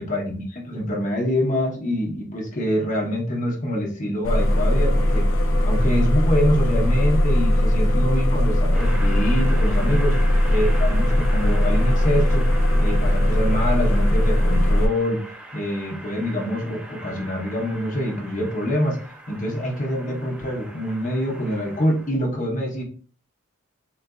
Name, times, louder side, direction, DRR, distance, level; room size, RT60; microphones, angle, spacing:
voice 1, 0.0-5.3 5.6-10.1 10.5-12.4 12.8-15.2 15.5-19.0 19.3-22.8, equal, 40° left, 0 dB, 0.8 m, -25 dB
sound 1, 4.2-14.9, left 1 dB, 75° left, 0.6 m, -19 dB
Train, 8.7-22.1, right 1 dB, 5° right, 0.4 m, -41 dB
3.9 x 2.4 x 2.3 m, 0.41 s
head